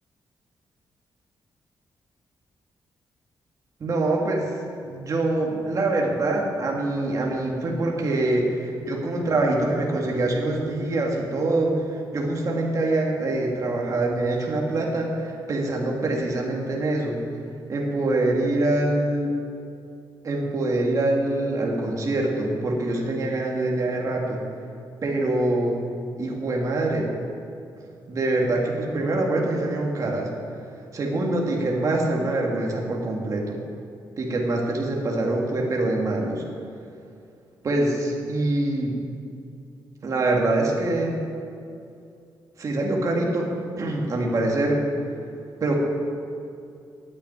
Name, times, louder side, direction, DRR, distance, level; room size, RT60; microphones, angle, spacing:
voice 1, 3.8-4.6 4.9-17.2 17.7-19.3 20.2-24.4 25.0-25.8 26.2-27.1 28.1-30.3 30.9-33.6 34.2-36.4 37.6-39.0 40.0-41.2 42.6-43.5 43.8-44.8 45.6-45.8, right 2 dB, 40° right, -1 dB, 1.9 m, -24 dB
9.7 x 8.4 x 9.1 m, 2.5 s
wide cardioid pair, 140°, 8 cm